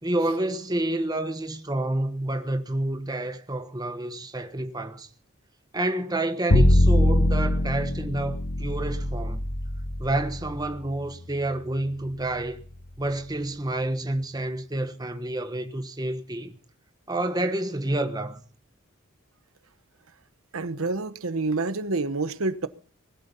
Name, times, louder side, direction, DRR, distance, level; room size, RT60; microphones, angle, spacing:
voice 1, 0.0-5.1 5.7-9.5 10.0-12.6 13.0-16.6 17.1-18.4, right 1 dB, 20° right, 1.2 m, -29 dB
Bowed string instrument, 6.5-12.6, left 1 dB, 60° left, 1.5 m, -24 dB
voice 2, 20.5-22.7, right 3 dB, 85° right, 1.0 m, -28 dB
20.5 x 12.0 x 5.5 m
head